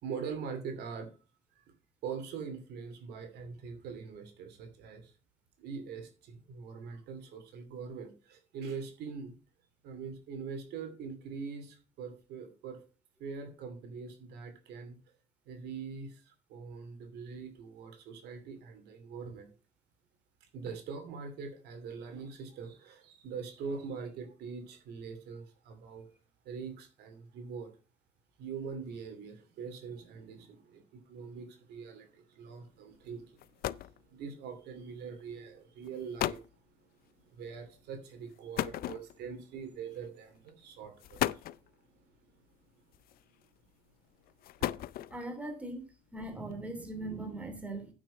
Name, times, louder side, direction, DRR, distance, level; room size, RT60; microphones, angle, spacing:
voice 1, 0.0-1.1 1.6-1.7 2.0-5.1 5.6-9.3 9.8-12.8 13.2-15.0 15.5-19.5 20.4-26.1 26.4-27.7 28.4-36.5 36.8-42.4 44.6-44.7, right 5 dB, 75° right, 2.7 m, -43 dB
sound 1, 33.0-33.1 33.4-34.0 35.0-35.2 35.8-35.9 36.2-36.5 38.6-39.4 40.4-40.5 41.0-41.7 42.9-43.4 44.3-45.3, left 14 dB, 60° left, 0.4 m, -35 dB
voice 2, 45.1-45.8 46.1-47.9, right 2 dB, 10° right, 3.0 m, -40 dB
9.2 x 6.3 x 5.6 m
cardioid pair, 110°, 17 cm